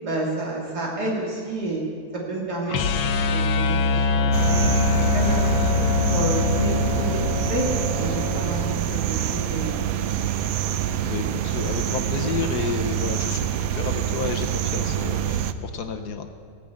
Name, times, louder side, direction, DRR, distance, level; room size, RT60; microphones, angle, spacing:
voice 1, 0.0-1.8 2.1-4.6 4.9-7.7 8.0-9.8, right 1 dB, 55° right, -3 dB, 3.1 m, -30 dB
sound 1, 2.7-8.8, left 4 dB, 90° left, 1.6 m, -23 dB
sound 2, 4.3-15.5, right 10 dB, 90° right, 0.7 m, -26 dB
voice 2, 11.0-16.3, left 6 dB, 60° left, 6 dB, 1.2 m, -31 dB
18.5 x 6.4 x 8.4 m, 2.3 s
omnidirectional pair, 2.1 m